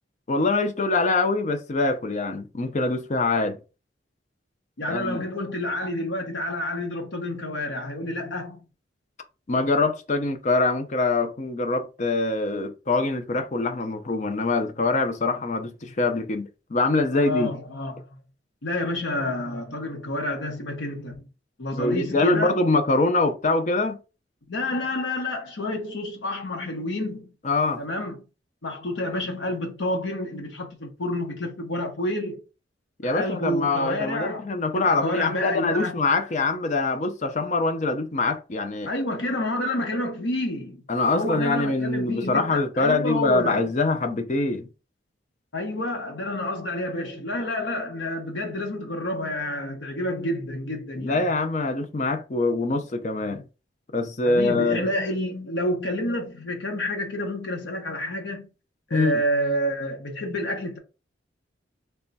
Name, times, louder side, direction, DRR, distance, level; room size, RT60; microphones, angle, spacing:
voice 1, 0.3-3.6 4.9-5.2 9.5-17.5 21.7-24.0 27.4-27.8 33.0-38.9 40.9-44.7 50.9-53.5 53.9-54.9 58.9-59.2, left 3 dB, 40° left, 0.5 m, -24 dB
voice 2, 4.8-8.6 17.1-18.0 18.6-21.3 21.6-22.6 24.5-27.3 27.8-28.2 28.6-32.4 33.0-34.5 34.7-36.0 38.9-40.8 41.1-43.6 45.5-51.2 54.2-58.5 58.9-60.8, left 1 dB, 85° left, 0.9 m, -29 dB
3.4 x 2.2 x 4.0 m
head